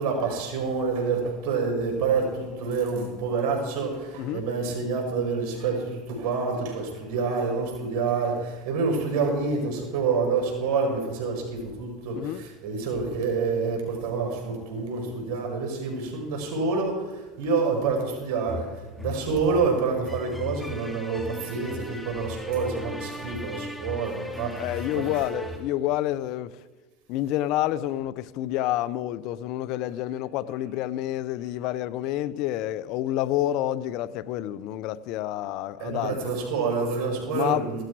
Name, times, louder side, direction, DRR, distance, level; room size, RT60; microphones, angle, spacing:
voice 1, 0.0-5.9 6.2-8.3 8.6-12.1 12.6-16.9 17.4-18.6 19.0-24.5 24.9-25.2 35.8-37.8, right 4 dB, 65° right, 5.0 m, -27 dB
voice 2, 12.1-12.4 24.6-26.6 27.1-36.3 37.3-37.8, left 13 dB, 60° left, 0.6 m, -28 dB
sound 1, 18.5-25.6, left 2 dB, 5° left, 2.3 m, -38 dB
15.5 x 13.0 x 4.7 m
hypercardioid pair, 95°, 0 cm